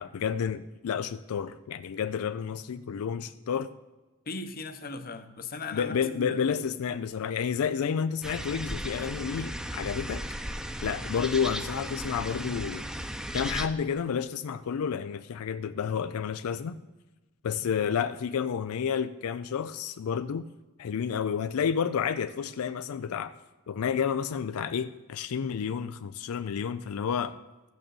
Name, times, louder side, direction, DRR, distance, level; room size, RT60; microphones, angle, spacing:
voice 1, 0.0-3.7 5.7-10.2 10.8-12.8 13.3-16.8 17.4-20.5 20.8-23.3 23.7-27.4, left 7 dB, 90° left, 12 dB, 0.4 m, -30 dB
voice 2, 4.3-6.6, left 3 dB, 45° left, 9 dB, 0.8 m, -38 dB
sound 1, 8.2-13.7, equal, 5° right, 0.6 m, -36 dB
14.0 x 6.2 x 6.9 m, 1.1 s
head